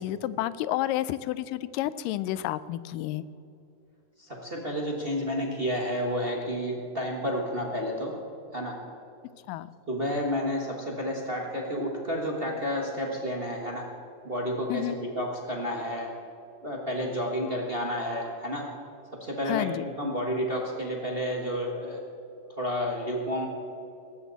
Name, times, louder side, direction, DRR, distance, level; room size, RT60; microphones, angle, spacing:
voice 1, 0.0-3.2 9.5-9.7 14.7-15.0 19.5-19.9, left 14 dB, 85° left, 16 dB, 2.2 m, -30 dB
voice 2, 4.2-8.2 8.5-8.8 9.9-13.9 14.2-16.1 16.6-18.7 19.1-22.0 22.5-23.5, equal, 45° right, -1 dB, 0.7 m, -31 dB
18.5 x 15.5 x 4.1 m, 2.7 s
omnidirectional pair, 3.8 m